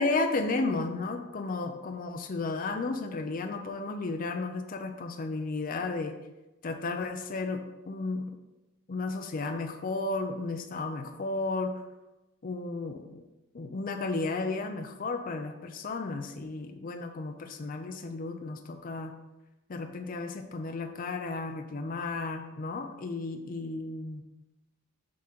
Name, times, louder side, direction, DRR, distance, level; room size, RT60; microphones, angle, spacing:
voice 1, 0.0-6.2 6.6-8.3 8.9-11.8 12.4-13.2 13.5-19.2 19.7-24.2, left 3 dB, 45° left, 6 dB, 0.5 m, -33 dB
7.5 x 3.7 x 4.3 m, 1.0 s
head